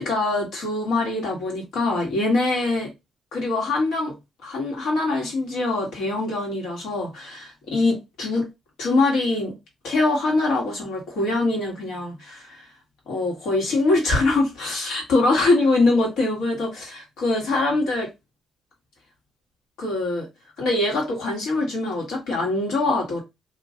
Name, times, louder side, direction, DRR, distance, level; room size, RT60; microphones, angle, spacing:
voice 1, 0.0-2.9 3.3-4.1 4.4-8.5 8.8-9.5 9.8-12.7 13.1-18.1 19.8-20.3 20.6-23.2, left 2 dB, 80° left, 1.9 m, -23 dB
2.9 x 2.5 x 3.8 m
cardioid pair, 120°, 0 cm